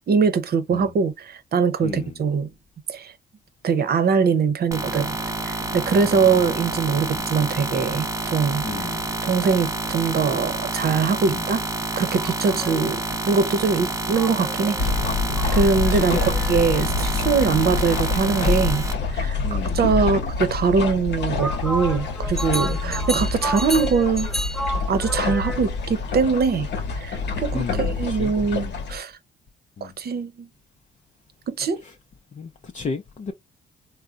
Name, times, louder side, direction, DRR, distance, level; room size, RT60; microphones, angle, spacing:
voice 1, 0.1-2.5 2.9-3.1 3.6-5.1 5.4-8.6 9.2-11.6 12.0-13.0 13.3-14.8 15.5-18.8 19.1-24.3 24.9-26.7 27.0-29.1 29.8-30.5 31.5-31.8, right 5 dB, 50° right, 0.8 m, -22 dB
voice 2, 1.8-2.1 5.9-6.4 7.1-7.3 8.6-9.1 11.3-11.4 12.5-12.6 15.9-16.2 16.7-17.0 17.4-17.8 19.4-19.9 22.6-23.1 27.5-28.8 29.8-29.9 31.8-31.9 32.3-33.3, left 5 dB, 40° left, 0.6 m, -34 dB
sound 1, 4.7-18.9, right 2 dB, 15° right, 0.8 m, -29 dB
sound 2, 12.2-13.0 14.1-16.8 21.4-25.9, equal, ahead, 0.3 m, -32 dB
sound 3, 14.8-29.0, left 4 dB, 60° left, 1.0 m, -26 dB
3.6 x 2.1 x 2.5 m
cardioid pair, 90°, 20 cm